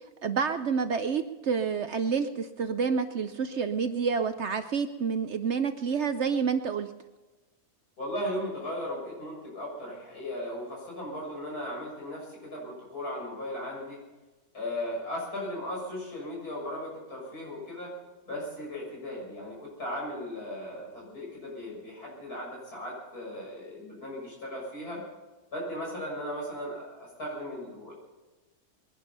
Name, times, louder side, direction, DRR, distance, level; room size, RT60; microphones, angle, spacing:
voice 1, 0.2-6.9, right 6 dB, 60° right, 10 dB, 0.8 m, -28 dB
voice 2, 8.0-14.0 14.5-17.9 18.3-25.0 25.5-27.9, left 1 dB, 75° left, -3 dB, 7.2 m, -37 dB
21.5 x 11.5 x 5.6 m, 1.2 s
omnidirectional pair, 1.6 m